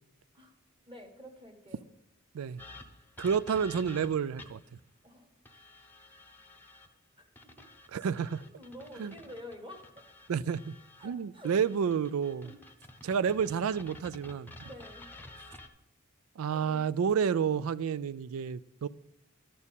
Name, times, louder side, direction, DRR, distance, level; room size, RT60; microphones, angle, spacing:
voice 1, 0.9-1.8 5.0-5.3 7.2-7.3 8.5-10.0 11.0-11.5 12.4-12.6 14.6-15.1 16.5-16.8, equal, 25° right, 1.5 m, -48 dB
sound 1, 2.6-4.7 5.5-6.9 7.4-11.1 11.4-15.7, left 2 dB, 10° left, 0.8 m, -51 dB
voice 2, 3.2-4.6 7.9-8.4 9.0-9.1 10.3-10.7 11.0-12.5 13.0-14.5 16.4-18.9, right 7 dB, 80° right, 0.4 m, -30 dB
12.0 x 4.3 x 7.1 m
head